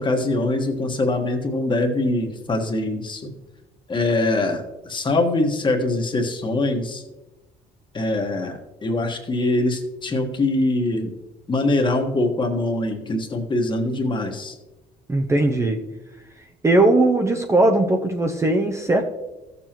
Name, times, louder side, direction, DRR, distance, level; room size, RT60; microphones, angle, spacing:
voice 1, 0.0-3.2 3.9-7.0 7.9-11.1 11.5-14.6, left 2 dB, 30° left, 3 dB, 1.4 m, -23 dB
voice 2, 15.1-15.8 16.6-19.0, right 2 dB, 15° right, 4 dB, 0.7 m, -19 dB
14.5 x 7.0 x 3.0 m, 1.1 s
cardioid pair, 110°, 17 cm